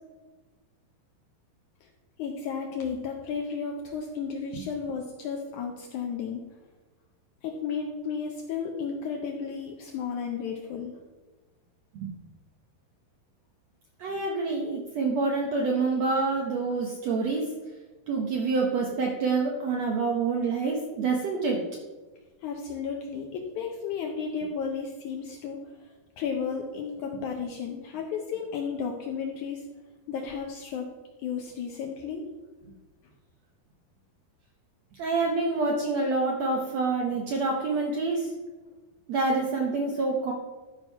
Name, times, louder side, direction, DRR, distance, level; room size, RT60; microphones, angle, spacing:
voice 1, 2.2-6.4 7.4-10.9 22.4-25.6 26.2-29.6 30.1-31.0 31.2-32.3, left 6 dB, 90° left, 1 dB, 1.7 m, -33 dB
voice 2, 14.0-17.5 18.1-21.6 35.0-38.3 39.1-40.3, right 3 dB, 85° right, 0 dB, 1.4 m, -27 dB
13.0 x 4.5 x 5.5 m, 1.2 s
omnidirectional pair, 4.5 m